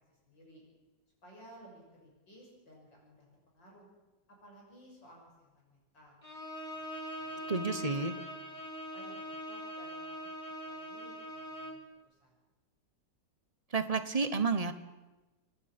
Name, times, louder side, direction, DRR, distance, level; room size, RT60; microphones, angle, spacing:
voice 1, 0.3-0.6 1.2-3.3 3.5-3.9 4.4-6.2 6.7-10.2 10.5-11.8 12.0-12.3, right 1 dB, 90° left, -1 dB, 6.8 m, -57 dB
Bowed string instrument, 6.2-11.9, equal, 20° left, 2.3 m, -42 dB
voice 2, 7.5-8.1 13.7-14.7, right 4 dB, 25° right, 9 dB, 0.9 m, -30 dB
27.0 x 11.0 x 8.8 m, 1.1 s
omnidirectional pair, 1.9 m